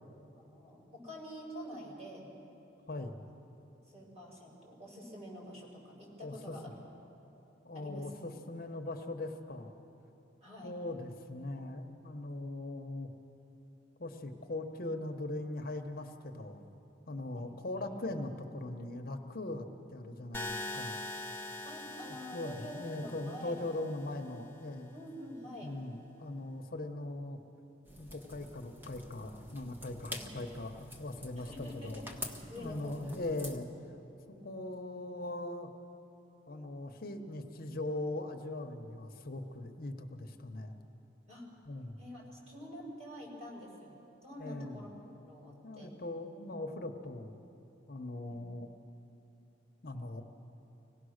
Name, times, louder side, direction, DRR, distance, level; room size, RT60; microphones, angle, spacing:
voice 1, 0.4-2.3 3.9-6.8 7.7-8.1 10.4-10.8 17.4-17.5 17.8-17.9 21.6-23.9 24.9-25.7 30.1-30.3 31.4-33.1 34.3-34.6 41.3-41.5 42.0-46.0 48.3-48.4, equal, 35° right, -3 dB, 5.6 m, -47 dB
voice 2, 2.9-3.2 6.2-6.6 7.6-9.7 10.6-13.1 14.0-16.6 17.1-21.0 22.3-24.9 25.6-27.4 28.0-32.0 32.6-33.7 34.4-35.7 36.5-40.8 41.7-42.0 44.4-44.8 45.6-47.4 47.9-48.7 49.8-50.2, left 2 dB, 50° left, 5 dB, 1.0 m, -40 dB
sound 1, 20.3-24.4, left 2 dB, 10° left, 1.0 m, -43 dB
sound 2, 27.8-33.6, left 1 dB, 10° right, 1.3 m, -47 dB
25.5 x 17.5 x 6.5 m, 3.0 s
head